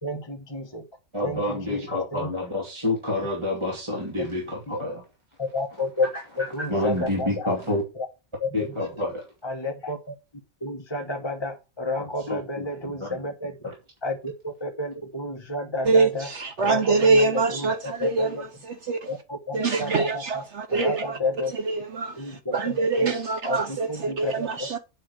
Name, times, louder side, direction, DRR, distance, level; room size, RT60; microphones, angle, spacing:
voice 1, 0.0-0.8 1.2-2.3 4.2-4.3 5.4-6.1 6.4-7.4 7.9-8.1 8.4-8.5 9.4-10.1 10.6-13.7 14.0-16.3 16.6-18.5 19.1-20.4 20.7-21.5 22.2-23.1 23.4-24.7, left 2 dB, 20° left, 1.2 m, -31 dB
voice 2, 1.1-2.4 2.8-4.4 4.8-4.9 6.7-7.2 7.5-7.8 8.5-9.1 12.3-12.4, left 2 dB, 20° right, 2.4 m, -27 dB
voice 3, 16.4-18.5 18.9-19.0 19.5-21.0 21.7-22.1 22.5-24.8, right 3 dB, 60° right, 1.1 m, -23 dB
8.0 x 5.8 x 6.4 m
omnidirectional pair, 1.4 m